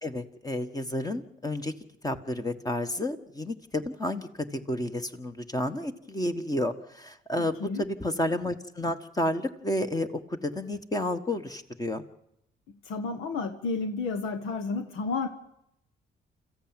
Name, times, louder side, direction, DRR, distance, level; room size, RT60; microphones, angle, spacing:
voice 1, 0.0-1.7 2.0-12.0, left 1 dB, 20° left, 8 dB, 1.5 m, -31 dB
voice 2, 7.4-7.8 12.8-15.3, left 4 dB, 90° left, 7 dB, 1.5 m, -31 dB
28.0 x 14.5 x 9.0 m, 0.81 s
cardioid pair, 90°, 20 cm